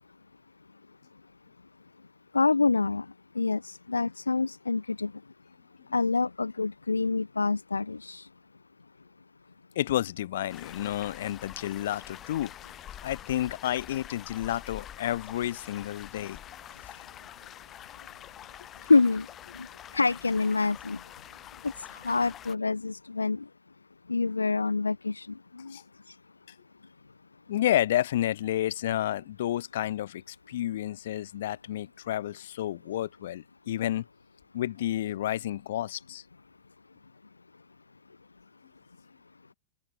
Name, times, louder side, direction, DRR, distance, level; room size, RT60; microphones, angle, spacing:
voice 1, 2.3-3.1 3.3-5.1 5.9-8.3 18.9-19.3 19.5-19.7 19.9-21.0 21.6-23.4 24.1-25.8, left 3 dB, 80° left, 0.9 m, -26 dB
voice 2, 9.8-12.5 13.0-16.4 16.9-17.0 25.7-25.8 27.5-34.0 34.5-36.2, left 13 dB, 60° left, 5.5 m, -30 dB
sound 1, 10.5-22.6, left 11 dB, 30° left, 4.1 m, -46 dB
open air
figure-of-eight pair, 90°, 0 cm